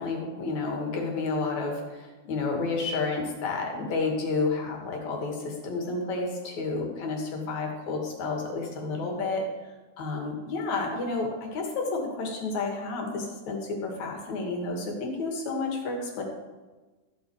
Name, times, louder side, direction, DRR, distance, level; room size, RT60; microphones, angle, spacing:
voice 1, 0.0-9.5 10.0-16.2, left 3 dB, 65° left, 1 dB, 3.4 m, -30 dB
14.5 x 9.1 x 4.8 m, 1.2 s
omnidirectional pair, 3.5 m